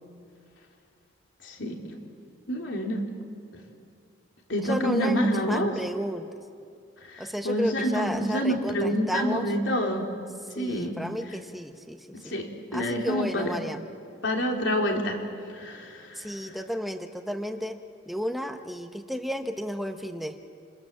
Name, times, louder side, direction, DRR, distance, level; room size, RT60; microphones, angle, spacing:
voice 1, 1.4-1.7 2.5-3.0 4.5-5.7 7.1-10.1 10.5-11.0 12.2-12.5 12.7-13.5 14.2-15.2 15.5-16.3, equal, 65° left, 1 dB, 3.5 m, -27 dB
voice 2, 4.6-6.3 7.2-9.5 10.5-12.4 12.7-13.8 16.2-17.8 18.1-20.3, equal, ahead, 6 dB, 1.0 m, -32 dB
28.5 x 20.5 x 7.4 m, 2.4 s
head